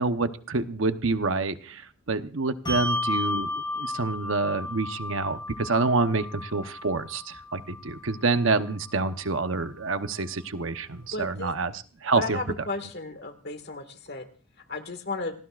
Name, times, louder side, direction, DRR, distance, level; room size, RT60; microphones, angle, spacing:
voice 1, 0.0-1.8 2.1-3.5 3.8-11.7 12.0-12.4, right 3 dB, 65° right, 9 dB, 1.0 m, -27 dB
Bell, 2.7-9.5, left 2 dB, 20° left, 4.5 m, -34 dB
voice 2, 11.0-11.5 12.2-14.3 14.7-15.3, left 2 dB, 50° left, 8 dB, 1.8 m, -34 dB
27.5 x 18.5 x 2.5 m, 0.38 s
head